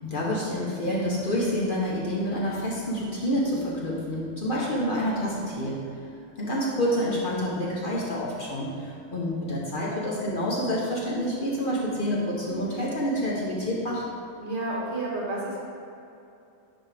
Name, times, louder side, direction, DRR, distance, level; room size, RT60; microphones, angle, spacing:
voice 1, 0.0-5.8 6.4-14.0, equal, 45° left, -5 dB, 1.0 m, -28 dB
voice 2, 14.4-15.6, right 2 dB, 55° right, -5 dB, 1.7 m, -31 dB
10.5 x 4.0 x 3.3 m, 2.7 s
omnidirectional pair, 1.4 m